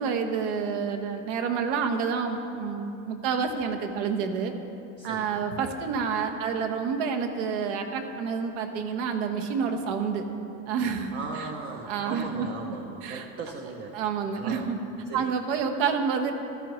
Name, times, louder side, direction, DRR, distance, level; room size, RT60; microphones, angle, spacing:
voice 1, 0.0-4.5 5.0-10.2 10.7-11.1 11.4-11.5 11.9-12.7 13.0-13.2 13.9-14.8 15.1-16.3, right 6 dB, 75° right, 5 dB, 1.2 m, -28 dB
voice 2, 5.0-5.5 10.9-14.0 14.4-14.7 15.1-15.3, right 4 dB, 30° right, 2 dB, 0.6 m, -38 dB
14.5 x 12.5 x 3.1 m, 2.9 s
cardioid pair, 175°, 35 cm